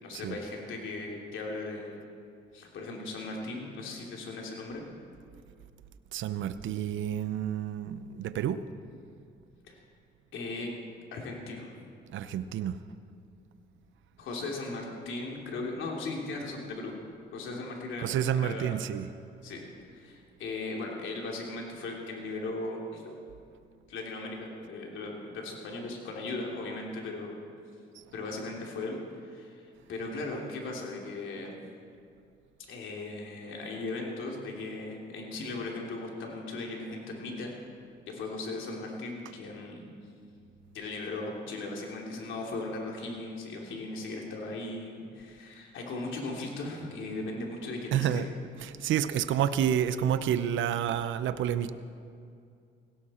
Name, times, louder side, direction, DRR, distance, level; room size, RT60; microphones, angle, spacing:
voice 1, 0.0-2.0 2.5-4.8 9.7-9.8 10.3-10.7 11.1-11.8 14.2-16.9 17.3-18.8 19.4-23.2 23.9-27.4 28.1-31.6 32.7-37.6 38.1-39.9 40.7-48.3, left 2 dB, 75° left, -1 dB, 3.1 m, -38 dB
voice 2, 6.1-8.6 12.1-12.8 18.0-19.1 47.9-48.3 48.6-51.7, right 9 dB, 75° right, 12 dB, 0.7 m, -29 dB
17.5 x 17.0 x 4.4 m, 2.4 s
cardioid pair, 90°, 20 cm